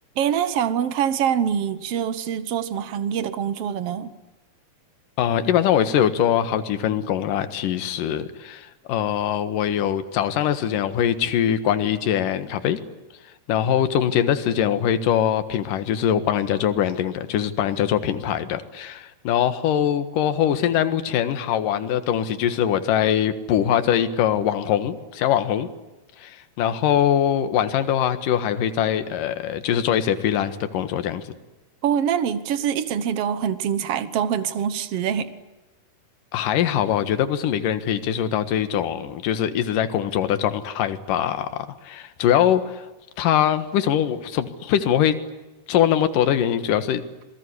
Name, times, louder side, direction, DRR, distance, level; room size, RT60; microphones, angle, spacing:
voice 1, 0.2-4.1 31.8-35.3, right 8 dB, 75° right, 13 dB, 1.3 m, -24 dB
voice 2, 5.2-12.8 13.5-25.7 26.2-31.3 36.3-42.9 43.2-45.2 45.7-47.0, left 10 dB, 65° left, 11 dB, 2.9 m, -22 dB
27.5 x 21.5 x 9.8 m, 1.1 s
omnidirectional pair, 4.5 m